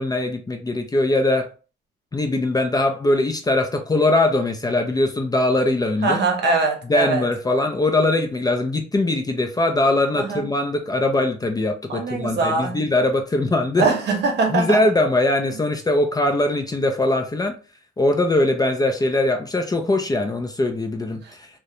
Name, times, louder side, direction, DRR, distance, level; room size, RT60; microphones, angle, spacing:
voice 1, 0.0-1.5 2.1-6.2 6.8-13.8 14.5-17.5 18.0-21.5, left 2 dB, 20° left, 0.4 m, -21 dB
voice 2, 6.0-7.2 10.2-10.5 11.9-12.8 13.8-14.8, right 3 dB, 60° right, 0.8 m, -22 dB
2.4 x 2.1 x 2.8 m
cardioid pair, 90°, 20 cm